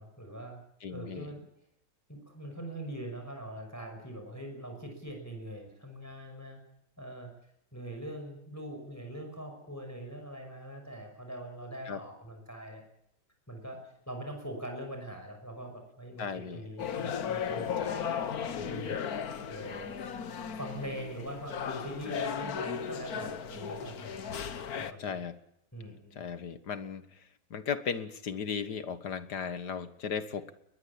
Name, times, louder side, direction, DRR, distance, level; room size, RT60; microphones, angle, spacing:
voice 1, 0.0-0.6 0.9-1.4 2.1-6.6 7.0-7.3 7.7-12.8 13.5-18.0 18.4-19.0 19.5-20.0 20.5-24.2 24.8-25.2 25.7-26.2, right 1 dB, 10° left, 3 dB, 5.8 m, -42 dB
voice 2, 0.8-1.3 11.9-12.0 16.2-16.6 17.8-18.1 25.0-25.3 26.2-27.0 27.5-30.5, left 6 dB, 80° left, 11 dB, 2.1 m, -36 dB
sound 1, 16.8-24.9, left 7 dB, 65° left, 1.7 m, -36 dB
21.5 x 20.0 x 8.6 m, 0.77 s
omnidirectional pair, 1.7 m